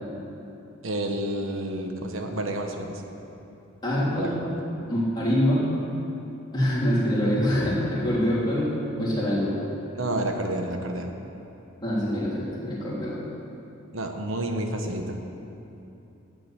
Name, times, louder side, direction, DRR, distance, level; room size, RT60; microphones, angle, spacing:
voice 1, 0.8-3.0 4.1-4.3 9.9-11.1 13.9-15.2, right 1 dB, 70° right, 4 dB, 1.3 m, -29 dB
voice 2, 3.8-4.4 4.9-5.7 6.5-8.7 9.0-9.5 11.8-13.2, equal, 20° left, -9 dB, 3.6 m, -24 dB
12.0 x 7.8 x 9.1 m, 3.0 s
head